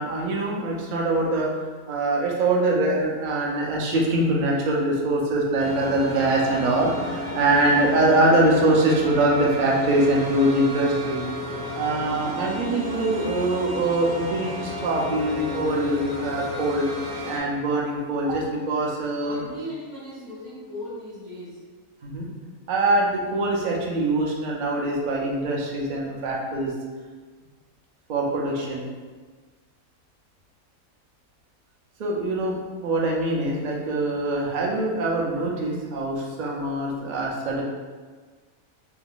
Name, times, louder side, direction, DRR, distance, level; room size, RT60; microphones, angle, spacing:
voice 1, 0.0-1.5 1.9-11.2 11.7-16.9 17.3-19.4 22.0-22.3 22.7-26.7 28.1-28.8 32.0-32.5 32.8-37.6, right 2 dB, 85° right, -2 dB, 0.4 m, -23 dB
sound 1, 5.6-17.4, left 1 dB, 70° right, 1.2 m, -32 dB
voice 2, 19.2-21.6, equal, 20° right, -11 dB, 0.9 m, -37 dB
2.7 x 2.3 x 3.7 m, 1.4 s
omnidirectional pair, 1.5 m